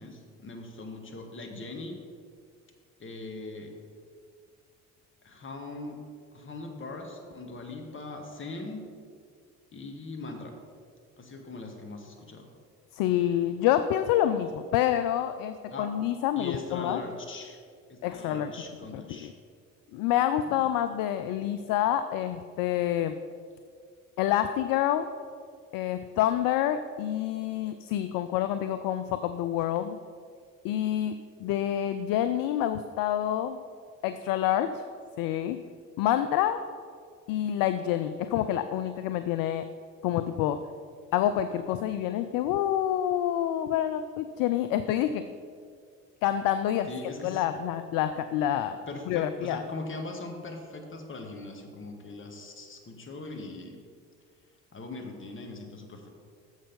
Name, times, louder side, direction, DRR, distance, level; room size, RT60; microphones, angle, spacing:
voice 1, 0.0-2.0 3.0-3.7 5.2-6.0 6.3-8.8 9.7-10.5 11.2-12.5 15.7-15.9 16.4-17.6 17.9-19.3 20.5-20.7 46.9-47.4 48.9-53.8 54.7-56.1, left 2 dB, 30° left, 3 dB, 1.7 m, -40 dB
voice 2, 12.9-17.0 18.0-18.5 18.9-19.3 19.9-23.2 24.2-25.1 25.7-30.0 30.6-33.6 34.0-34.8 35.2-35.7 36.0-36.6 37.3-39.6 40.0-40.7 41.1-45.3 46.2-46.9 47.2-48.8 49.1-49.6, left 11 dB, 60° left, 10 dB, 0.5 m, -27 dB
7.4 x 6.4 x 5.3 m, 2.1 s
hypercardioid pair, 55°, 39 cm